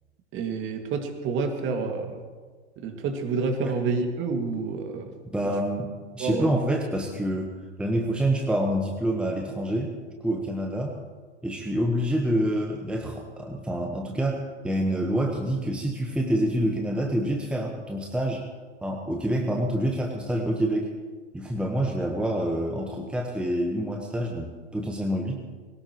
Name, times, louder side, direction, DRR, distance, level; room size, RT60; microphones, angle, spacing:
voice 1, 0.3-2.2 2.8-5.1 6.2-6.8, right 4 dB, 35° right, 4 dB, 2.3 m, -28 dB
voice 2, 5.3-9.9 10.2-10.9 11.4-18.4 18.8-20.9 21.3-25.5, right 1 dB, 5° right, 2 dB, 1.3 m, -27 dB
21.0 x 18.5 x 3.1 m, 1.4 s
figure-of-eight pair, 100°, 35 cm